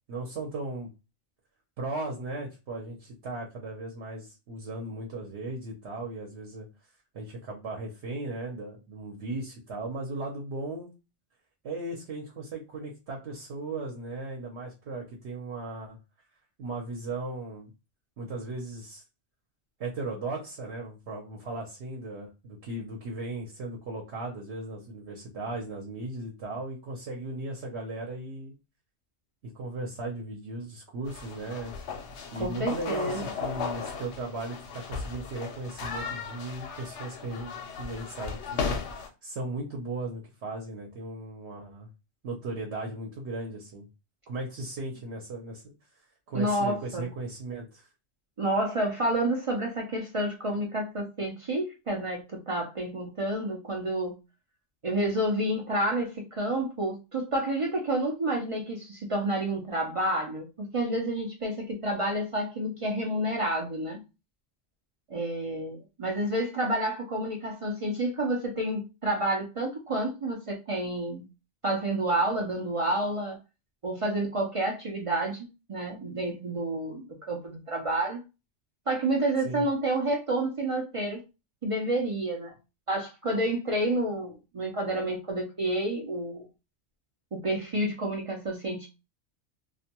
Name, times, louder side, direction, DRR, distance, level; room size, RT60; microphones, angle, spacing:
voice 1, 0.1-0.9 1.8-6.7 7.1-10.9 11.6-16.0 16.6-17.7 18.2-19.0 19.8-28.5 29.5-31.7 32.3-38.7 39.2-41.9 42.2-43.9 44.3-45.6 46.3-47.9 79.4-79.6, right 2 dB, 70° right, 0 dB, 0.9 m, -37 dB
sound 1, 31.1-39.1, left 5 dB, 75° left, 0.9 m, -36 dB
voice 2, 32.4-33.2 46.3-47.1 48.4-54.2 54.8-64.0 65.1-71.2 71.6-73.4 73.8-78.2 78.9-81.2 81.6-82.5 82.9-86.4 87.3-88.9, right 1 dB, 45° right, 1 dB, 0.4 m, -29 dB
2.4 x 2.2 x 2.8 m, 0.28 s
omnidirectional pair, 1.2 m